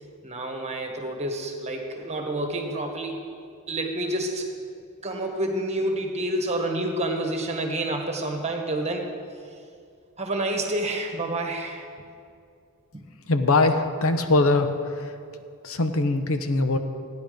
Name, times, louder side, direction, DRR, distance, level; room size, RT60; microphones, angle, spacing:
voice 1, 0.2-3.2 3.7-4.5 5.0-9.1 10.2-11.9 12.9-13.0, right 1 dB, 30° right, 3 dB, 1.5 m, -28 dB
voice 2, 13.3-15.1 15.6-16.8, left 2 dB, 65° left, 8 dB, 0.9 m, -22 dB
15.0 x 10.0 x 5.2 m, 2.3 s
head